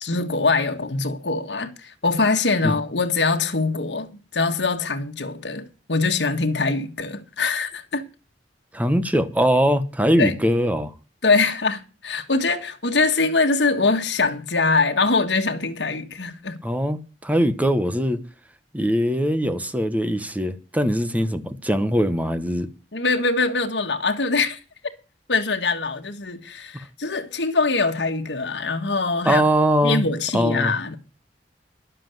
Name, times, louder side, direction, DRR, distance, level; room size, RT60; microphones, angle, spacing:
voice 1, 0.0-8.0 10.2-10.3 11.2-16.6 22.9-24.6 25.3-29.4 29.8-31.0, left 3 dB, 75° left, 1.5 m, -23 dB
voice 2, 8.7-10.9 16.6-18.2 18.7-22.7 29.2-30.1 30.3-30.7, equal, 10° right, 1.1 m, -21 dB
11.5 x 7.6 x 7.8 m
head